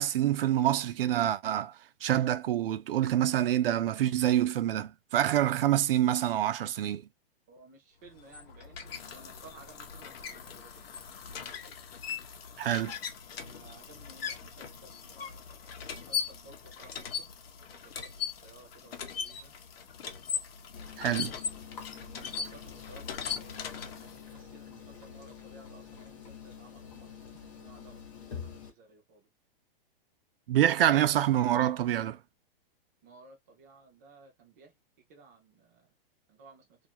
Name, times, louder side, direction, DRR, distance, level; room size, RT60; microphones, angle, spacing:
voice 1, 0.0-1.7 2.0-7.0 12.6-12.9 21.0-21.3 30.5-32.2, right 12 dB, 70° right, 0.5 m, -26 dB
voice 2, 7.5-10.8 11.3-11.5 13.5-15.4 16.1-16.9 17.2-17.3 18.0-18.1 18.4-19.5 21.9-23.6 24.0-24.1 24.5-29.2 33.0-34.7 35.1-35.5 36.4-36.6, right 3 dB, 15° right, 0.5 m, -56 dB
sound 1, 8.1-24.3, left 7 dB, 80° left, 0.8 m, -40 dB
sound 2, 20.7-28.7, left 7 dB, 30° left, 1.0 m, -47 dB
2.5 x 2.4 x 2.8 m
hypercardioid pair, 175°, 30 cm